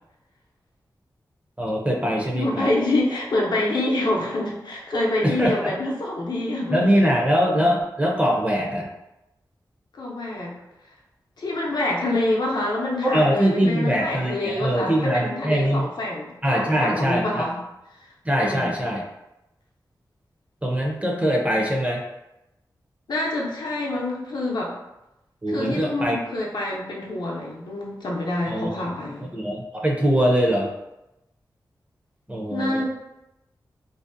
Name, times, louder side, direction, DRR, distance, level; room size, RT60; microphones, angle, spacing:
voice 1, 1.6-2.7 5.2-5.7 6.7-8.9 13.1-15.9 16.4-17.5 18.2-19.0 20.6-22.0 25.4-26.2 28.5-28.7 29.3-30.7 32.3-32.8, equal, 20° right, -1 dB, 0.5 m, -22 dB
voice 2, 2.3-6.9 9.9-10.5 11.4-17.6 18.4-18.8 23.1-24.7 25.5-29.3 32.5-32.9, left 2 dB, 70° left, -3 dB, 0.6 m, -26 dB
2.6 x 2.0 x 2.5 m, 0.91 s
cardioid pair, 60°, 8 cm